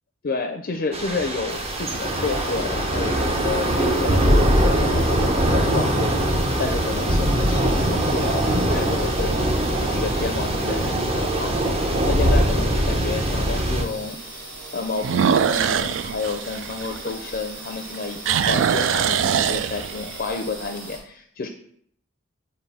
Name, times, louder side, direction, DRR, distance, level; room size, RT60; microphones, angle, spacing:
voice 1, 0.2-11.8 12.1-14.4 14.7-21.5, left 3 dB, 50° left, 4 dB, 0.5 m, -30 dB
Thunder / Rain, 0.9-13.8, right 1 dB, 30° right, 0.7 m, -22 dB
sound 1, 1.3-2.0 2.7-2.8 8.0-8.5 8.9-9.0 9.6-9.7 9.9-10.0 11.6-11.7 15.0-17.5 17.8-20.2, right 7 dB, 70° right, 0.3 m, -23 dB
sound 2, 1.5-21.0, right 2 dB, 50° right, 2.4 m, -38 dB
7.1 x 2.6 x 5.4 m, 0.68 s
head